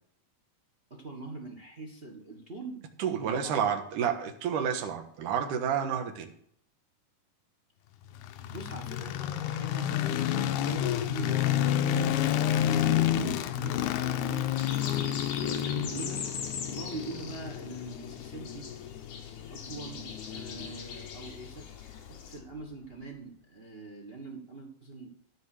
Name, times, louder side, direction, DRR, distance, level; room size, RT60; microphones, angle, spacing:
voice 1, 0.9-2.8 3.1-3.7 8.4-10.1 10.5-18.7 19.5-21.7 22.1-25.1, right 3 dB, 40° right, 2 dB, 0.8 m, -43 dB
voice 2, 3.0-6.3, right 8 dB, 75° right, 4 dB, 2.8 m, -30 dB
sound 1, 8.2-22.3, left 11 dB, 75° left, 2.0 m, -30 dB
sound 2, 14.6-22.4, left 6 dB, 55° left, 2.4 m, -42 dB
13.0 x 5.2 x 6.6 m, 0.65 s
omnidirectional pair, 3.8 m